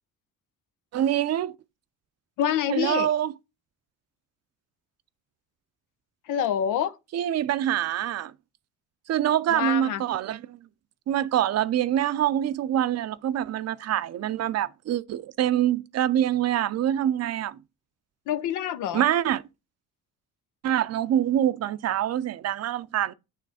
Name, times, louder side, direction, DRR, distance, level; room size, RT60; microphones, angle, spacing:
voice 1, 0.9-1.5 2.7-3.3 7.1-8.3 9.1-10.6 11.1-17.6 18.9-19.4 20.6-23.1, right 11 dB, 55° right, 0.5 m, -25 dB
voice 2, 2.4-3.1 6.3-7.0 9.5-10.0 18.3-19.0, left 10 dB, 90° left, 0.6 m, -26 dB
9.2 x 3.2 x 4.9 m
cardioid pair, 90°, 30 cm